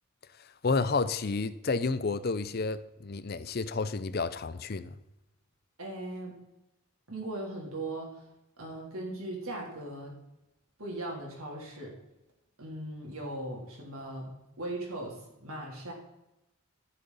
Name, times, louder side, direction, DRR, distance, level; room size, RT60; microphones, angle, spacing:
voice 1, 0.6-4.9, left 4 dB, 45° left, 14 dB, 0.5 m, -30 dB
voice 2, 5.8-6.4 7.1-8.2 8.6-10.2 10.8-11.9 12.6-14.3 14.6-15.9, right 1 dB, 80° right, -1 dB, 3.3 m, -38 dB
14.5 x 6.8 x 4.1 m, 0.93 s
head